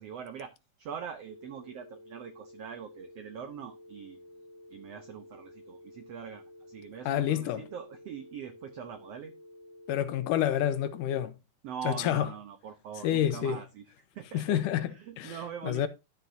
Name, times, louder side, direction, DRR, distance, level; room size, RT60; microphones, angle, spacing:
voice 1, 0.0-4.2 4.7-9.3 11.6-13.8 14.1-14.6 14.9-15.9, right 8 dB, 85° right, 1.4 m, -42 dB
sound 1, 1.2-11.3, left 1 dB, 60° right, 1.2 m, -52 dB
voice 2, 7.1-7.6 9.9-11.3 11.8-12.3 13.0-13.6 14.3-15.4 15.6-15.9, left 11 dB, 75° left, 2.2 m, -28 dB
12.0 x 8.2 x 2.7 m
omnidirectional pair, 4.0 m